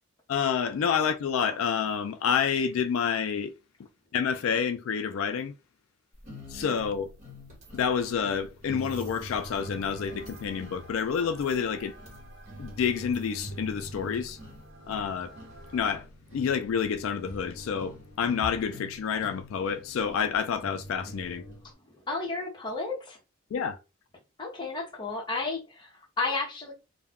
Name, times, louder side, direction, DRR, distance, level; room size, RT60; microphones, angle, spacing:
voice 1, 0.3-3.5 4.1-5.5 6.5-7.1 7.7-11.9 12.6-14.4 14.9-15.3 15.7-16.1 16.3-21.4 23.5-23.8, left 7 dB, 75° left, 0.3 m, -28 dB
sound 1, 6.2-21.7, equal, 35° right, 1.2 m, -44 dB
sound 2, 9.3-16.0, right 1 dB, 60° right, 0.7 m, -51 dB
voice 2, 21.6-23.2 24.4-26.7, left 3 dB, 20° left, 0.7 m, -33 dB
2.3 x 2.1 x 3.5 m
head